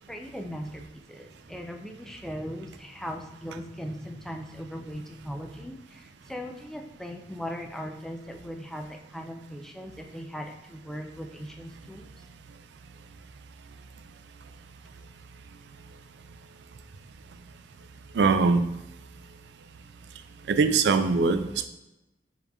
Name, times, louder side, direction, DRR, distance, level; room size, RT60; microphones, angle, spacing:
voice 1, 0.1-12.3, equal, 5° left, 2 dB, 0.4 m, -39 dB
voice 2, 18.1-18.7 20.5-21.7, right 4 dB, 75° right, 9 dB, 0.4 m, -22 dB
5.4 x 3.5 x 2.3 m, 0.94 s
head